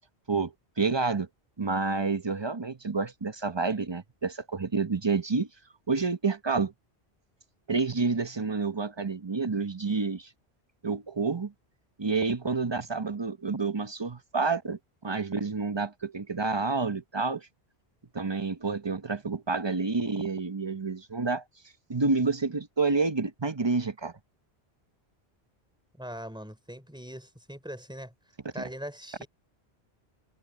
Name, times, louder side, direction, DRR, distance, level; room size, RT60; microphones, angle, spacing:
voice 1, 0.3-1.3 1.6-5.5 5.9-6.7 7.7-10.3 10.8-11.5 12.0-17.5 18.1-21.4 21.9-24.1, right 4 dB, 25° right, 0.8 m, -29 dB
voice 2, 26.0-28.1 28.5-29.3, equal, 5° right, 3.8 m, -41 dB
omnidirectional pair, 1.1 m